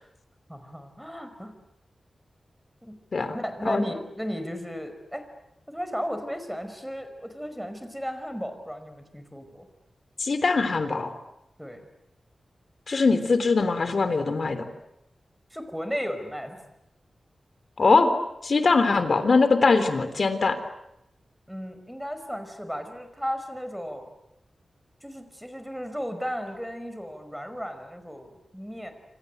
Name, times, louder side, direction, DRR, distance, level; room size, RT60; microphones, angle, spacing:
voice 1, 0.5-1.6 2.8-3.0 3.3-5.2 5.7-9.7 11.6-11.9 15.5-16.6 21.5-24.1 25.0-28.9, equal, ahead, 8 dB, 5.2 m, -34 dB
voice 2, 10.2-11.1 12.9-14.7 17.8-18.1 18.4-20.6, left 4 dB, 55° left, 10 dB, 3.5 m, -22 dB
27.5 x 26.5 x 8.1 m, 0.86 s
wide cardioid pair, 85°, 0 cm